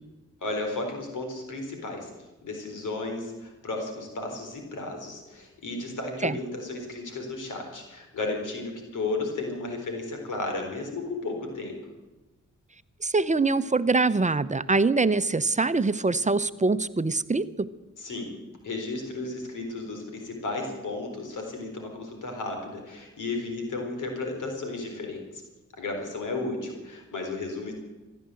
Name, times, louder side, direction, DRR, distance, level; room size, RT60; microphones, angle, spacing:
voice 1, 0.4-2.1 2.4-11.8 18.0-18.3 18.6-25.2 25.8-27.7, left 2 dB, 80° left, 3 dB, 4.0 m, -33 dB
voice 2, 13.0-17.7, right 3 dB, 25° right, 14 dB, 0.8 m, -24 dB
15.0 x 10.5 x 7.7 m, 1.1 s
supercardioid pair, 45°, 30 cm